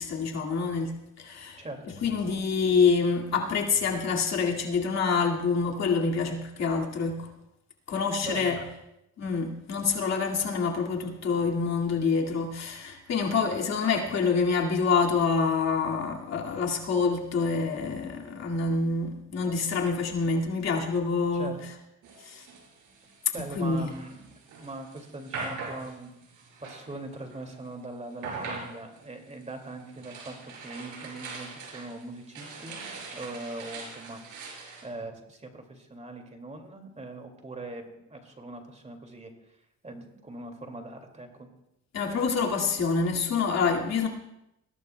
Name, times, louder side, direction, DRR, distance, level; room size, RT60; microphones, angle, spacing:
voice 1, 0.0-1.6 1.9-7.3 7.9-8.6 9.2-21.6 22.2-22.4 23.4-23.9 41.9-44.1, left 5 dB, 60° left, 2.3 m, -27 dB
voice 2, 8.2-8.6 21.3-21.6 23.3-26.1 26.6-32.8 33.1-39.3 39.8-41.5, right 2 dB, 25° right, 2.4 m, -41 dB
sound 1, 22.0-27.7 28.1-34.9, right 3 dB, 85° right, 4.7 m, -42 dB
21.0 x 16.5 x 2.3 m
cardioid pair, 90°, 30 cm